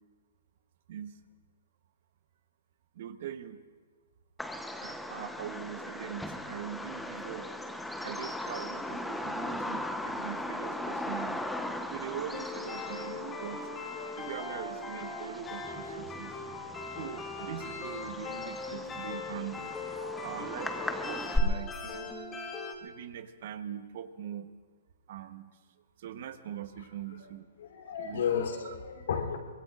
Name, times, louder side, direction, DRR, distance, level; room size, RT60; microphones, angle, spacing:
voice 1, 0.9-1.2 2.9-3.6 4.8-7.5 8.0-11.4 11.9-13.7 14.2-16.4 17.0-19.7 20.2-22.1 22.8-24.5 25.1-25.5 26.0-27.5 28.0-28.2 28.6-28.7, right 9 dB, 55° right, 10 dB, 1.1 m, -42 dB
Bird vocalization bird call bird song, 4.4-21.4, left 1 dB, 5° left, 0.9 m, -38 dB
sound 1, 12.3-22.7, left 3 dB, 20° left, 2.3 m, -40 dB
voice 2, 27.6-29.4, left 7 dB, 70° left, 2 dB, 3.4 m, -32 dB
25.0 x 22.0 x 2.5 m, 1.5 s
hypercardioid pair, 140°, 0 cm